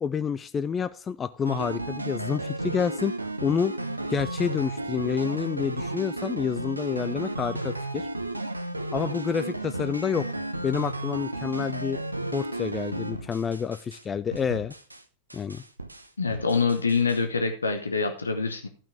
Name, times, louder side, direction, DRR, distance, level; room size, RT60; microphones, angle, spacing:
voice 1, 0.0-3.1 3.4-3.7 4.1-8.1 8.9-10.3 10.6-12.0 12.3-14.7 15.3-15.6, left 6 dB, 20° left, 13 dB, 0.4 m, -28 dB
sound 1, 1.4-14.0 14.3-15.0 15.3-17.2, right 1 dB, 85° right, 0.7 m, -33 dB
voice 2, 16.2-18.7, left 4 dB, 75° left, 7 dB, 0.9 m, -25 dB
12.0 x 6.0 x 4.7 m, 0.38 s
figure-of-eight pair, 90°, 0 cm